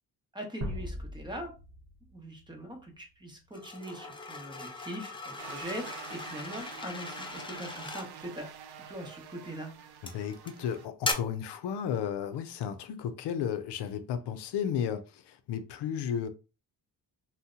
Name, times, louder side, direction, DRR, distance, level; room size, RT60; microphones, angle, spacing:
voice 1, 0.3-1.5 2.1-8.5 8.9-9.7, equal, 10° right, 0.9 m, -41 dB
sound 1, 0.6-3.5, equal, 40° right, 1.0 m, -41 dB
sound 2, 3.5-8.1 9.0-9.3 10.1-10.5 11.0-11.1, left 3 dB, 15° left, 0.3 m, -38 dB
sound 3, 5.4-10.9, right 7 dB, 70° right, 0.6 m, -47 dB
voice 2, 10.0-16.3, left 8 dB, 85° left, 0.5 m, -33 dB
2.7 x 2.1 x 3.6 m
cardioid pair, 125°, 39 cm